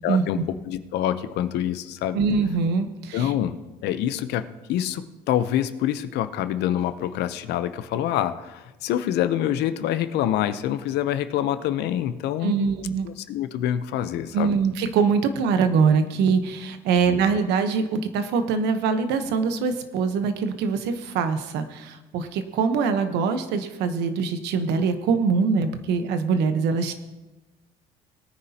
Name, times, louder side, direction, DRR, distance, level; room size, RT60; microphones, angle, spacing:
voice 1, 0.0-2.2 3.1-3.6 3.8-12.7 13.0-14.6 17.1-17.3, left 11 dB, 80° left, 12 dB, 0.7 m, -26 dB
voice 2, 2.1-3.3 12.4-13.1 14.3-26.9, right 5 dB, 85° right, 8 dB, 1.0 m, -23 dB
19.5 x 9.6 x 2.9 m, 1.1 s
cardioid pair, 110°, 17 cm